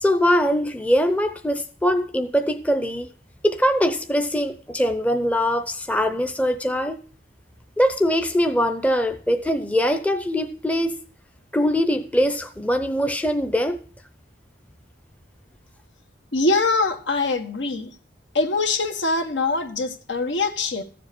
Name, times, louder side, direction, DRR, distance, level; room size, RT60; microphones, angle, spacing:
voice 1, 0.0-3.1 3.4-7.0 7.8-11.0 11.5-13.8, equal, 10° left, 0.7 m, -22 dB
voice 2, 16.3-17.9 18.3-20.8, left 3 dB, 75° left, 1.6 m, -23 dB
14.5 x 7.6 x 6.0 m
head